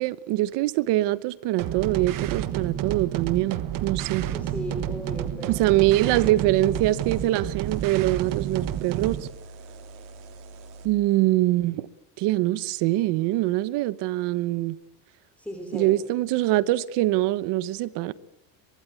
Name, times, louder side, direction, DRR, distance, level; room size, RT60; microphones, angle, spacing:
voice 1, 0.0-4.2 5.5-9.3 10.8-11.9 12.2-14.8 15.7-18.1, right 16 dB, 60° right, 1.0 m, -24 dB
sound 1, 1.6-9.3, right 11 dB, 40° right, 1.3 m, -30 dB
voice 2, 4.2-6.4 15.4-16.0, equal, 5° left, 3.1 m, -38 dB
sound 2, 5.1-10.9, right 3 dB, 75° right, 4.5 m, -46 dB
23.5 x 23.0 x 8.4 m
cardioid pair, 155°, 48 cm